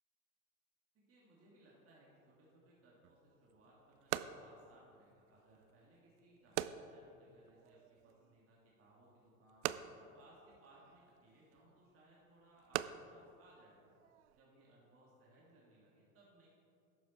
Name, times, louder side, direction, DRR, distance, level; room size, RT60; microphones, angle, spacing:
voice 1, 0.9-9.6 10.0-13.9 14.3-16.5, right 1 dB, 35° right, -5 dB, 2.6 m, -65 dB
sound 1, 3.0-14.4, right 13 dB, 55° right, 0.5 m, -46 dB
12.0 x 7.4 x 4.6 m, 2.5 s
hypercardioid pair, 85°, 42 cm